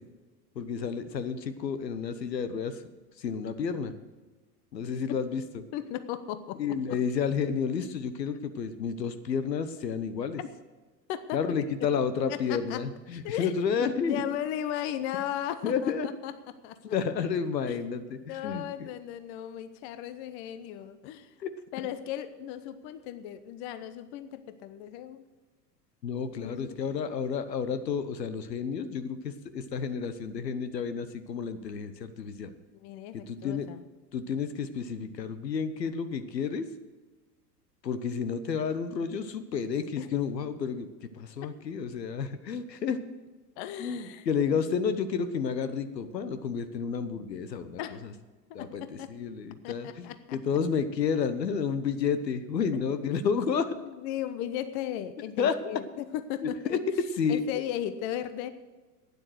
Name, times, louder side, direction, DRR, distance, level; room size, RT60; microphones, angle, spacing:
voice 1, 0.5-2.8 3.2-3.9 4.7-5.4 6.6-10.4 11.3-14.3 15.6-16.1 16.8-18.9 21.4-21.5 26.0-32.5 33.1-33.7 34.1-36.7 37.8-40.9 41.1-43.0 43.8-48.1 48.5-53.7 55.4-55.6 56.4-57.6, left 6 dB, 75° left, 11 dB, 1.1 m, -31 dB
voice 2, 5.7-6.8 10.4-10.5 11.1-11.4 11.8-11.9 12.3-12.8 13.2-13.5 13.8-15.9 16.2-16.3 16.6-16.8 17.7-17.8 18.3-21.3 21.7-25.2 26.3-26.8 32.7-33.8 40.0-40.1 41.4-41.5 43.6-44.6 47.8-48.0 48.5-49.1 49.6-50.4 54.0-56.6 57.3-58.5, left 11 dB, 40° left, 13 dB, 0.8 m, -36 dB
12.0 x 9.5 x 6.4 m, 1.3 s
figure-of-eight pair, 90°, 50 cm